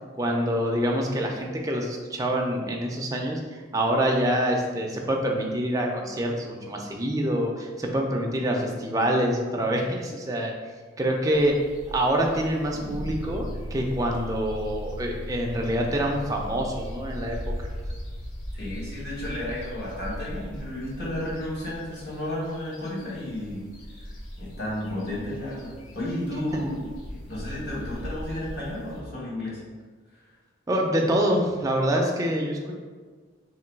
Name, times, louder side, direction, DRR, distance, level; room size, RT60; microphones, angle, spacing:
voice 1, 0.2-10.5 11.0-17.5 30.7-32.7, right 1 dB, 15° right, 0 dB, 0.4 m, -26 dB
sound 1, 11.3-29.0, equal, 90° left, 0.8 m, -40 dB
sound 2, 12.7-21.7, equal, 20° left, 1.0 m, -39 dB
voice 2, 18.5-23.7 24.4-26.9 27.3-29.6, left 1 dB, 50° left, -7 dB, 1.3 m, -32 dB
3.0 x 2.9 x 4.5 m, 1.5 s
head